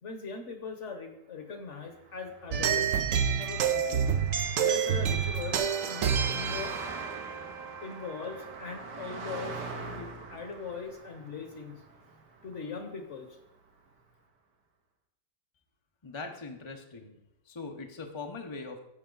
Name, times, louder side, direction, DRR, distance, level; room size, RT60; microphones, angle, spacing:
voice 1, 0.0-2.9 3.3-4.1 4.5-6.7 7.8-9.6 9.9-11.8 12.4-13.4, left 5 dB, 50° left, 6 dB, 1.3 m, -40 dB
Car passing by, 1.9-13.4, right 3 dB, 80° right, 2.0 m, -44 dB
sound 1, 2.5-8.3, right 7 dB, 60° right, 1.0 m, -28 dB
voice 2, 16.0-17.2 17.5-18.8, left 3 dB, 25° left, 3 dB, 0.6 m, -41 dB
14.5 x 5.6 x 3.9 m, 0.86 s
omnidirectional pair, 1.8 m